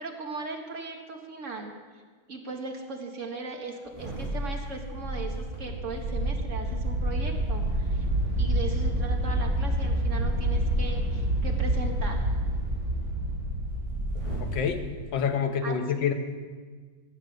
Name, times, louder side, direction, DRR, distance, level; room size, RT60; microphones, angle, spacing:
voice 1, 0.0-1.7 2.3-8.1 8.4-12.4 15.6-15.8, right 3 dB, 40° right, 2 dB, 1.6 m, -38 dB
sound 1, 3.9-14.5 15.0-15.1, right 1 dB, 15° right, 4.4 m, -35 dB
sound 2, 4.9-14.8, right 1 dB, 60° right, 5.1 m, -29 dB
voice 2, 14.4-14.8 15.1-16.1, left 7 dB, 65° left, 6 dB, 1.7 m, -27 dB
16.0 x 7.2 x 7.8 m, 1.5 s
omnidirectional pair, 2.3 m